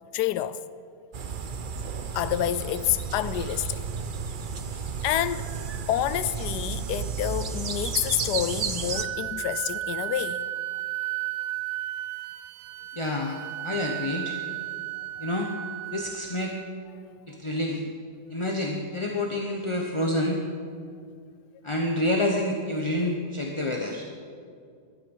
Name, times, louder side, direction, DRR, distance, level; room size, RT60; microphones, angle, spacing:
voice 1, 0.1-0.6 2.1-3.8 5.0-5.5 5.9-10.4 17.0-17.1, left 12 dB, 75° left, 1.2 m, -28 dB
sound 1, 1.1-9.0, right 6 dB, 50° right, 0.6 m, -32 dB
Wind instrument woodwind instrument, 8.9-16.7, right 15 dB, 75° right, 1.0 m, -34 dB
voice 2, 13.0-14.4 15.2-15.5 15.9-16.5 17.3-17.8 18.3-20.4 21.6-24.0, left 1 dB, 20° left, 0.9 m, -28 dB
16.5 x 12.5 x 5.5 m
omnidirectional pair, 1.8 m